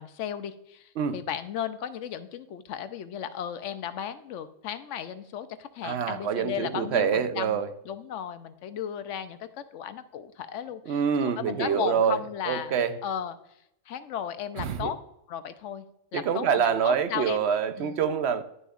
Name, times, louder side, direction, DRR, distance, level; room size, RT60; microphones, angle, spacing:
voice 1, 0.0-13.4 13.9-15.0 15.3-15.9 16.1-17.4 17.8-18.0, left 9 dB, 70° left, 11 dB, 1.0 m, -35 dB
voice 2, 5.8-7.7 10.9-12.2 12.5-12.9 14.6-14.9 16.1-18.4, right 7 dB, 65° right, 11 dB, 0.9 m, -26 dB
10.5 x 6.4 x 2.4 m, 0.80 s
omnidirectional pair, 1.3 m